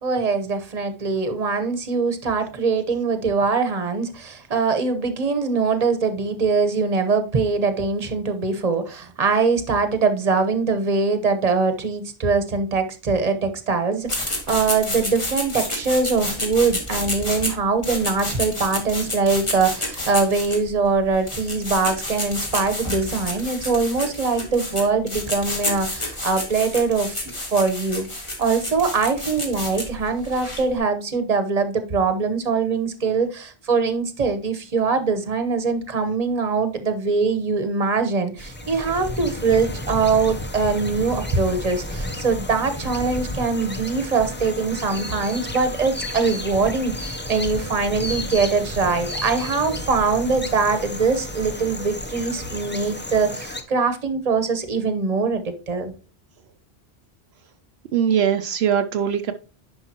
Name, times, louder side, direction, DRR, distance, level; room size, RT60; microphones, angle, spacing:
voice 1, 0.0-28.1 28.4-55.9, right 4 dB, 40° right, 9 dB, 1.1 m, -22 dB
sound 1, 14.1-30.8, left 1 dB, 30° left, 1.7 m, -30 dB
sound 2, 38.4-53.6, left 1 dB, 15° left, 0.5 m, -32 dB
voice 2, 57.9-59.3, right 8 dB, 75° right, 8 dB, 0.8 m, -21 dB
10.5 x 5.4 x 2.9 m, 0.34 s
omnidirectional pair, 1.1 m